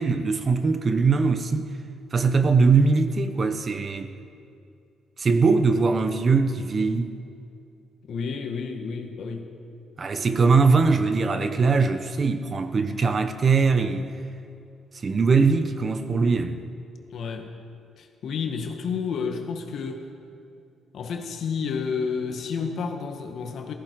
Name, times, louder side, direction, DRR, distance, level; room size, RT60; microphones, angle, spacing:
voice 1, 0.0-1.7 2.1-4.1 5.2-7.1 10.0-14.1 14.9-16.6, right 4 dB, 40° right, 1.0 m, -21 dB
voice 2, 8.1-9.5 17.1-17.5 18.0-20.1 20.9-23.7, left 5 dB, 65° left, 1.7 m, -30 dB
17.0 x 14.5 x 4.8 m
cardioid pair, 90°, 0 cm